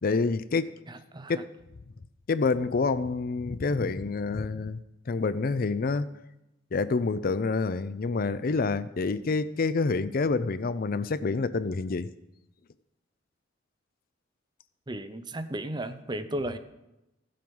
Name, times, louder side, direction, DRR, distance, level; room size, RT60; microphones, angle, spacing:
voice 1, 0.0-0.7 1.3-1.5 2.3-4.8 5.1-6.1 6.7-12.1, left 4 dB, 50° left, 15 dB, 0.5 m, -27 dB
voice 2, 0.9-1.3 14.9-16.6, right 1 dB, 25° right, 9 dB, 0.7 m, -34 dB
15.5 x 7.7 x 5.4 m, 0.92 s
head